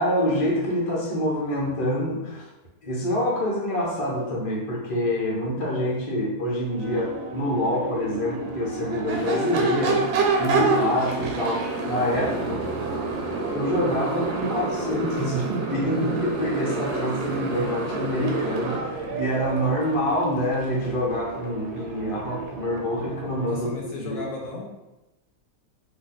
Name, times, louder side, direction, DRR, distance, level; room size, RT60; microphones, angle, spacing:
voice 1, 0.0-2.5 2.8-10.1 10.4-12.6 13.5-24.2, left 1 dB, 30° left, -4 dB, 0.6 m, -26 dB
Crowd / Race car auto racing / Accelerating revving vroom, 6.6-23.7, right 4 dB, 85° right, 1.2 m, -30 dB
Motorcycle, 9.1-18.8, right 2 dB, 65° right, 0.7 m, -31 dB
voice 2, 23.5-24.6, left 3 dB, 70° left, -2 dB, 1.0 m, -35 dB
2.7 x 2.2 x 3.9 m, 1.0 s
omnidirectional pair, 1.7 m